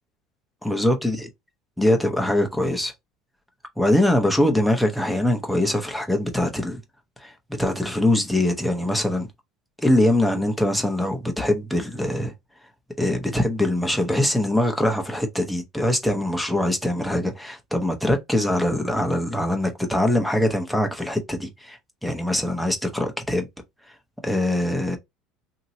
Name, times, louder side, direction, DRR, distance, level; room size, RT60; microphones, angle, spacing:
voice 1, 0.6-1.3 1.8-2.9 3.8-6.8 7.2-7.3 7.6-9.3 9.8-12.3 13.0-23.5 24.2-25.0, left 1 dB, ahead, 0.9 m, -23 dB
2.8 x 2.7 x 2.8 m
supercardioid pair, 95°, 0 cm